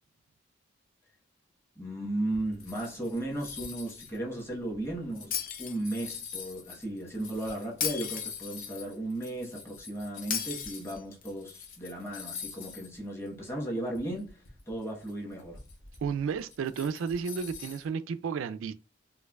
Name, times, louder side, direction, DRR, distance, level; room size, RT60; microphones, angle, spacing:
voice 1, 1.8-15.6, right 1 dB, 15° left, 1.1 m, -35 dB
sound 1, 2.3-11.0 11.2-13.0 13.3-13.4 14.0-17.9, left 7 dB, 75° left, 1.0 m, -45 dB
Shatter, 5.3-6.3 7.8-8.8 10.3-11.3, left 8 dB, 45° left, 0.6 m, -35 dB
voice 2, 16.0-18.7, right 6 dB, 90° right, 0.3 m, -32 dB
4.4 x 2.5 x 2.3 m
head